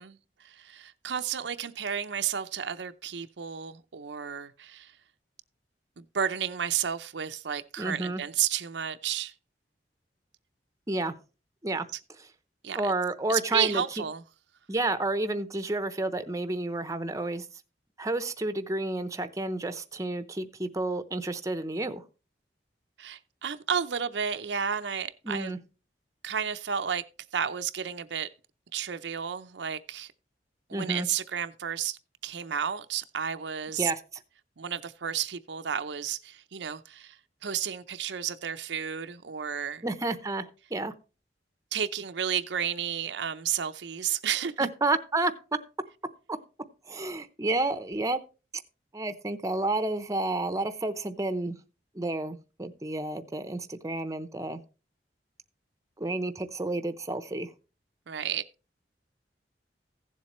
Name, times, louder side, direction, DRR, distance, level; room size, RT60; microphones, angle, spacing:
voice 1, 0.0-4.9 6.0-9.3 12.6-12.9 13.3-14.2 23.0-25.5 26.2-27.0 27.3-28.3 28.7-30.1 30.7-33.9 34.6-37.2 37.4-39.8 41.7-44.7 58.1-58.4, right 8 dB, 80° right, 0.6 m, -32 dB
voice 2, 7.8-8.2 10.9-11.2 11.6-11.9 12.7-13.8 14.7-17.5 18.0-22.0 25.2-25.6 30.7-31.1 33.8-34.0 39.8-40.9 44.6-45.3 46.3-46.4 46.9-48.2 48.9-51.6 51.9-54.6 56.0-57.5, right 2 dB, 20° right, 0.7 m, -30 dB
15.5 x 7.4 x 3.0 m
head